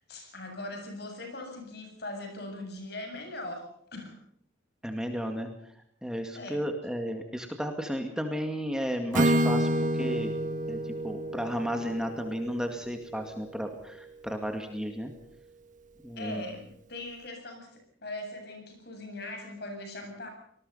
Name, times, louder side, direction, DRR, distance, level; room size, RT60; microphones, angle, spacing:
voice 1, 0.0-4.1 6.3-6.6 16.2-20.3, left 2 dB, 55° left, 4 dB, 7.8 m, -40 dB
voice 2, 4.8-5.5 6.0-10.4 10.7-15.1 16.0-16.4, equal, 5° right, 4 dB, 2.1 m, -33 dB
Acoustic guitar / Strum, 9.1-13.1, right 1 dB, 40° right, 1.7 m, -28 dB
26.5 x 20.0 x 5.6 m, 0.69 s
head